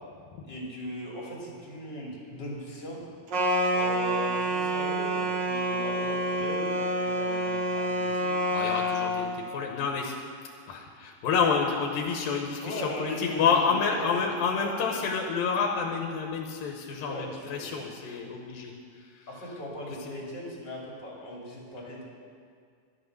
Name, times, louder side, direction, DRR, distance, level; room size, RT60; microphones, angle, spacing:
voice 1, 0.4-3.0 3.7-8.4 12.6-14.1 14.6-14.7 16.9-17.8 19.3-22.0, left 1 dB, 30° left, -4 dB, 3.0 m, -38 dB
sound 1, 3.3-9.3, right 1 dB, 50° right, 1.3 m, -28 dB
voice 2, 8.5-10.2 10.7-18.7 19.0-19.3 20.0-20.1, left 5 dB, 90° left, 1 dB, 2.8 m, -29 dB
12.5 x 11.0 x 6.6 m, 2.2 s
omnidirectional pair, 4.0 m